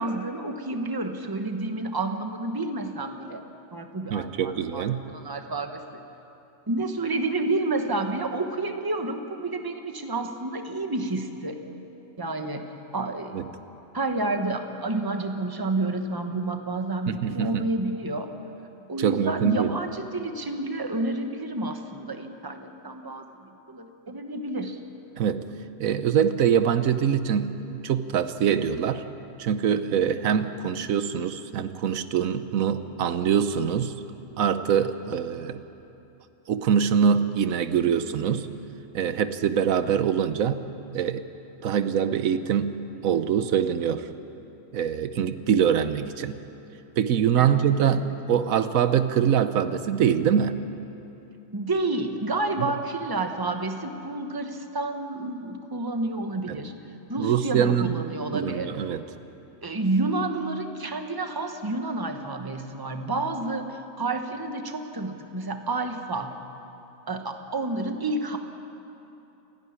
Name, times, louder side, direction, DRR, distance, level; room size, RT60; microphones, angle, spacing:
voice 1, 0.0-3.4 3.7-6.0 6.7-11.6 12.2-12.7 12.9-13.6 13.9-18.3 18.9-24.8 47.4-48.1 51.5-56.7 57.1-58.8 59.6-66.4 67.1-68.4, right 2 dB, 15° right, 5 dB, 1.2 m, -30 dB
voice 2, 4.1-5.0 13.3-13.5 17.1-17.6 19.0-19.7 25.2-25.4 25.8-29.0 29.4-33.9 34.4-35.6 36.5-38.5 38.9-40.6 40.9-41.2 41.6-44.1 44.7-46.4 47.0-50.6 52.6-52.7 56.5-56.6 57.2-57.9 58.3-59.0, right 8 dB, 90° right, 11 dB, 1.2 m, -24 dB
29.0 x 11.0 x 9.6 m, 2.9 s
omnidirectional pair, 1.4 m